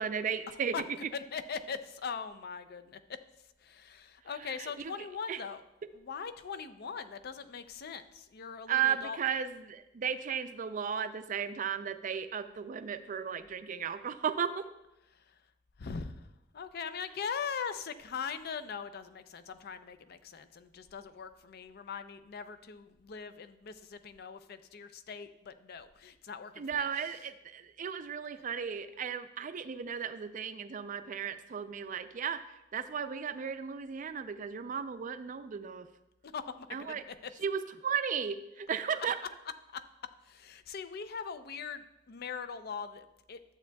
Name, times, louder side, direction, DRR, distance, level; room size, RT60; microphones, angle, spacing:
voice 1, 0.0-0.8 4.6-4.9 5.3-5.4 8.7-14.7 26.6-32.4 32.7-35.9 36.7-37.0 37.4-39.2, right 7 dB, 40° right, 11 dB, 0.4 m, -35 dB
voice 2, 0.7-3.2 3.6-5.6 5.9-9.2 15.1-15.3 15.8-16.3 16.5-27.1 36.2-37.3 39.7-39.8 40.2-43.4, left 6 dB, 55° left, 11 dB, 0.5 m, -41 dB
12.0 x 7.9 x 2.3 m, 0.91 s
head